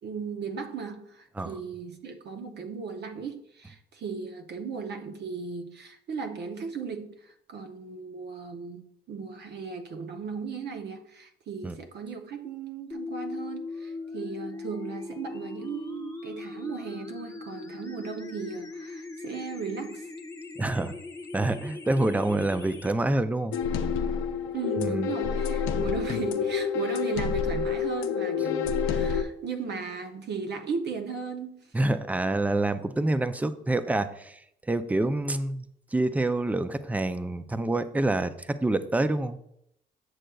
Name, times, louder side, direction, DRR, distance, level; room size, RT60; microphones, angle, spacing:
voice 1, 0.0-20.1 24.5-31.8, right 5 dB, 60° right, 0.6 m, -36 dB
sound 1, 12.9-22.9, left 3 dB, 15° left, 0.9 m, -39 dB
voice 2, 20.6-20.9 21.3-23.6 24.8-25.1 31.7-39.4, right 2 dB, 10° right, 0.4 m, -27 dB
sound 2, 23.5-29.2, left 6 dB, 80° left, 0.5 m, -28 dB
7.8 x 6.3 x 2.3 m
cardioid pair, 90°, 20 cm